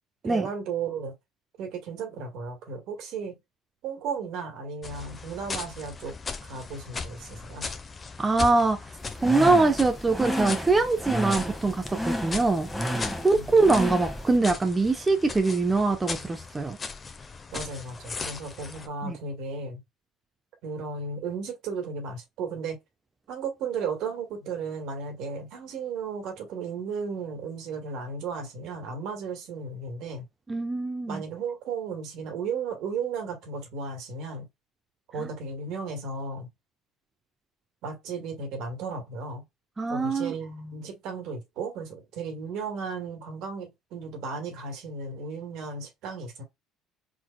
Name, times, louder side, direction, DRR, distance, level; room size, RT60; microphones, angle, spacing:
voice 1, 0.2-1.1 1.6-3.4 3.8-6.1 6.4-7.7 13.2-13.5 17.5-19.8 20.6-22.8 23.3-30.3 31.1-34.5 35.1-36.5 37.8-39.4 39.9-46.4, right 5 dB, 65° right, 2.0 m, -35 dB
sound 1, 4.8-18.9, left 4 dB, 30° left, 1.1 m, -38 dB
voice 2, 8.2-8.8 9.2-12.7 13.2-16.8 19.0-19.2 30.5-31.2 39.8-40.3, right 3 dB, 20° right, 0.9 m, -23 dB
sound 2, 9.0-14.4, equal, 5° left, 1.7 m, -32 dB
4.4 x 4.4 x 2.3 m
hypercardioid pair, 65°, 0 cm